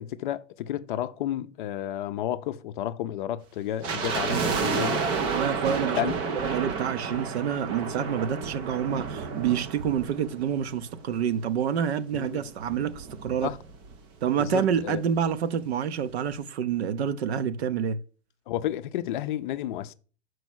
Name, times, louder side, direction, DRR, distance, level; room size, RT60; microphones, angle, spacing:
voice 1, 0.0-5.1 5.9-6.1 12.1-12.4 13.4-13.6 14.4-15.0 18.5-19.9, left 12 dB, 45° left, 0.5 m, -31 dB
sound 1, 3.8-11.1 11.4-11.5 12.1-14.0 14.2-14.3 14.5-14.8 15.3-15.4, right 5 dB, 15° right, 0.3 m, -31 dB
voice 2, 5.2-6.1 6.4-13.5 14.2-18.0, right 8 dB, 60° right, 0.8 m, -28 dB
6.1 x 4.7 x 6.2 m
hypercardioid pair, 120°, 36 cm